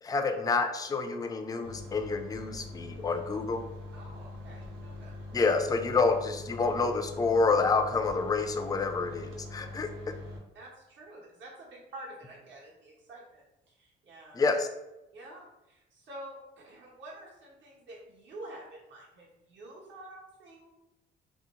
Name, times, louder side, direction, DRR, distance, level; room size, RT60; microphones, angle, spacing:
voice 1, 0.0-3.6 5.3-9.9 14.3-14.7, left 4 dB, 20° left, 6 dB, 0.3 m, -28 dB
sound 1, 1.6-10.4, left 2 dB, 85° right, 0.8 m, -43 dB
voice 2, 3.9-5.2 9.6-9.7 10.5-14.4 15.1-20.7, right 1 dB, 70° right, -4 dB, 1.2 m, -48 dB
2.8 x 2.0 x 3.6 m, 0.95 s
cardioid pair, 90°, 20 cm